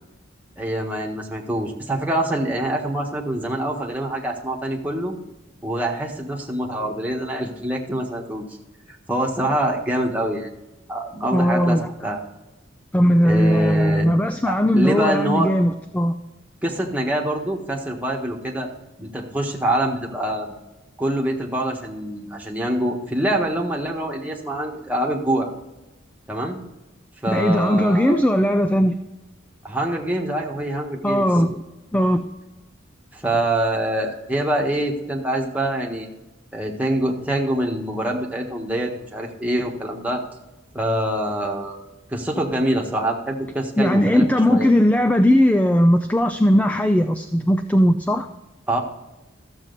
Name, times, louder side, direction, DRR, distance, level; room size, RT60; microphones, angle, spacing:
voice 1, 0.6-5.1 5.6-8.4 8.9-10.5 10.9-12.2 13.2-14.1 14.5-15.5 16.6-18.7 19.0-20.6 21.0-25.5 26.3-26.6 27.2-28.2 29.6-31.2 33.1-36.1 36.5-40.2 40.7-41.8 42.1-44.7 48.7-48.8, right 1 dB, 10° right, -1 dB, 1.5 m, -25 dB
voice 2, 11.3-11.9 12.9-16.2 27.3-29.0 31.0-31.6 31.9-32.2 43.8-48.3, equal, 10° left, 7 dB, 0.4 m, -18 dB
13.5 x 7.4 x 4.0 m, 1.0 s
head